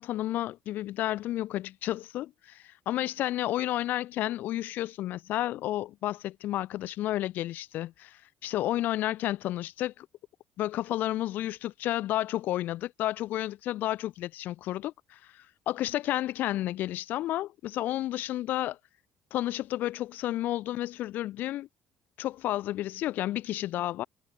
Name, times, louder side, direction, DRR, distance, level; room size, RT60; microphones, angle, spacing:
voice 1, 0.0-10.1 10.6-18.8 19.3-21.7 22.2-24.0, left 14 dB, 65° left, 0.4 m, -31 dB
cardioid pair, 125°, 3 cm